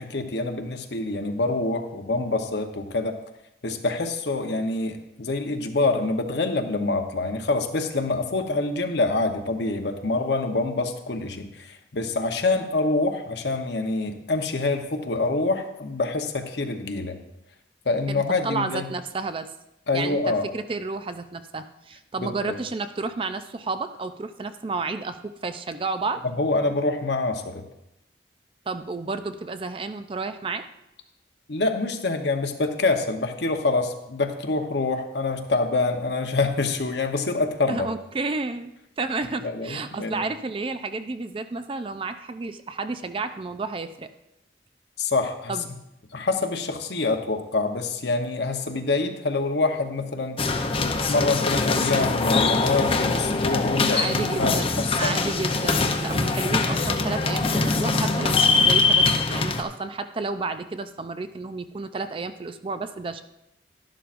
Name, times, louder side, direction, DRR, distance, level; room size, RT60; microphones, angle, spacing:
voice 1, 0.0-3.2 3.6-17.2 17.8-18.9 19.9-20.4 22.2-22.6 26.3-27.6 31.5-37.9 39.4-40.2 45.0-45.6 46.1-55.2, left 3 dB, 65° left, 5 dB, 0.9 m, -26 dB
voice 2, 18.1-19.5 19.9-26.2 28.7-30.7 37.7-44.1 45.5-45.7 53.9-63.2, right 3 dB, 30° right, 10 dB, 0.4 m, -31 dB
sound 1, 50.4-59.6, left 3 dB, 30° left, 0.6 m, -23 dB
11.5 x 11.5 x 2.5 m, 0.86 s
head